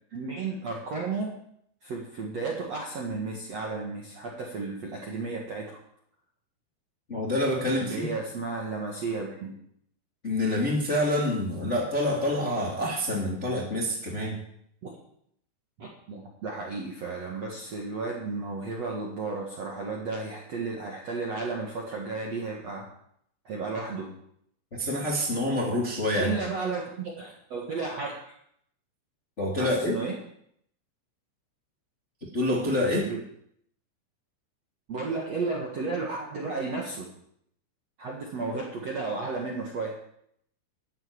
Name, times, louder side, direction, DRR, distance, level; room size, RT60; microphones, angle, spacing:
voice 1, 0.1-1.3 1.8-5.8 7.8-9.5 14.8-15.0 15.8-22.9 23.4-24.1 26.2-28.3 29.6-30.1 33.1-33.2 34.9-37.1 38.0-39.9, right 3 dB, 50° right, -1 dB, 2.1 m, -33 dB
voice 2, 7.1-8.1 10.2-14.4 24.7-26.3 29.4-30.0 32.3-33.1, left 1 dB, 20° left, -2 dB, 1.9 m, -27 dB
13.5 x 8.0 x 9.7 m, 0.70 s
omnidirectional pair, 5.5 m